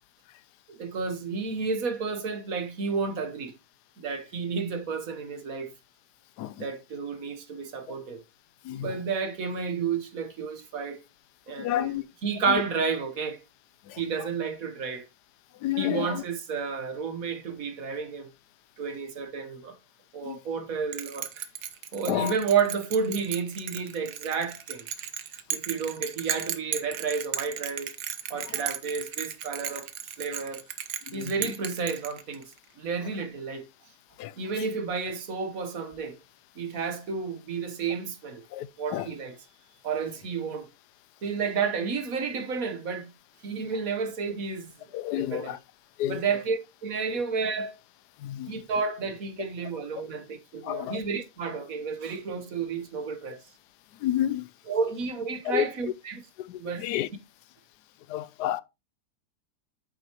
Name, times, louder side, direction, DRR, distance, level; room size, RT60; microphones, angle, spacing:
voice 1, 0.7-3.5 4.0-5.7 6.6-8.2 8.7-11.0 11.5-11.9 12.2-13.4 14.0-15.0 15.8-18.3 18.8-19.7 20.1-21.5 21.9-24.9 25.5-27.9 28.3-30.6 31.1-32.4 32.8-33.6 34.4-36.2 36.5-38.4 38.8-39.3 39.8-40.7 41.2-43.1 43.4-44.7 45.2-45.5 46.1-47.8 48.5-53.4 54.7-56.2 56.6-56.8, right 5 dB, 60° right, 1.5 m, -31 dB
voice 2, 8.6-9.0 11.5-12.0 12.5-12.6 13.8-14.3 15.5-16.2 20.2-20.4 22.1-22.3 28.4-28.7 31.1-31.5 34.2-34.7 38.5-39.1 44.9-45.6 46.0-46.2 47.1-47.2 48.2-48.6 50.6-51.0 53.9-54.5 55.4-55.6 56.4-57.1 58.1-58.6, left 13 dB, 90° left, 1.2 m, -31 dB
Bell, 20.9-32.6, right 9 dB, 85° right, 1.5 m, -35 dB
8.7 x 6.9 x 3.0 m
omnidirectional pair, 1.7 m